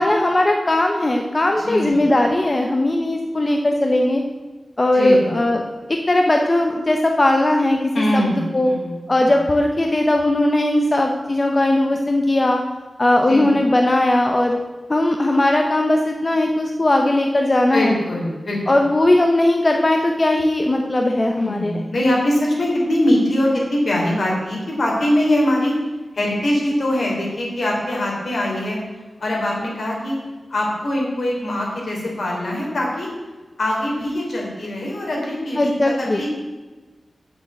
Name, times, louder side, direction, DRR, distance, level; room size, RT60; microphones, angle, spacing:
voice 1, 0.0-4.2 4.8-5.6 5.9-7.8 8.1-8.2 8.5-8.7 9.1-12.6 13.0-14.6 14.9-17.9 18.7-21.8 35.6-36.2, left 1 dB, 30° left, 3 dB, 0.8 m, -18 dB
voice 2, 1.6-2.0 4.9-5.4 7.9-9.3 13.3-13.6 17.7-18.6 21.3-25.7 26.1-28.8 29.2-30.2 30.5-33.1 33.6-36.3, left 1 dB, 70° left, -2 dB, 3.3 m, -22 dB
7.5 x 7.3 x 7.4 m, 1.3 s
wide cardioid pair, 110°, 0 cm